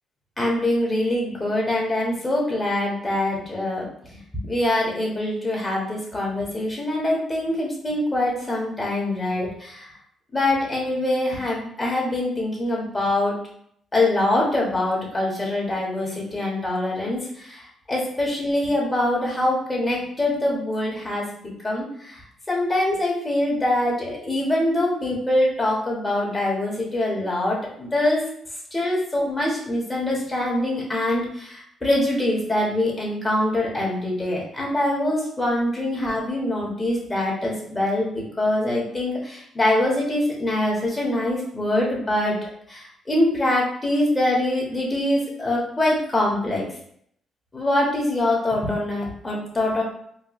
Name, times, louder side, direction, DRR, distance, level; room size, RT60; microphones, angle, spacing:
voice 1, 0.4-3.9 4.5-9.9 10.3-13.3 13.9-17.6 17.9-21.2 21.6-22.1 22.5-28.2 28.7-42.4 42.7-46.7 47.5-49.8, left 1 dB, 25° left, -3 dB, 1.5 m, -24 dB
4.5 x 2.3 x 3.2 m, 0.68 s
cardioid pair, 90°, 0 cm